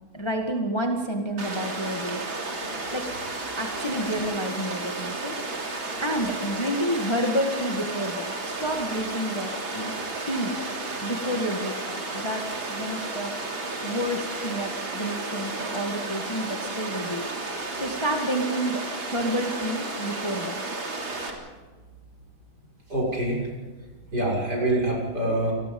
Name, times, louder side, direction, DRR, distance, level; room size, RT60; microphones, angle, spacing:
voice 1, 0.1-2.2 2.9-3.1 3.6-5.4 5.6-9.9 10.3-10.5 11.0-13.4 13.8-17.3 17.7-20.6, equal, 15° left, 2 dB, 1.8 m, -29 dB
Water, 1.4-21.3, right 2 dB, 70° right, 4.2 m, -33 dB
voice 2, 22.9-23.5 24.1-25.5, right 1 dB, 50° right, -3 dB, 7.2 m, -25 dB
28.0 x 20.0 x 5.5 m, 1.3 s
omnidirectional pair, 2.2 m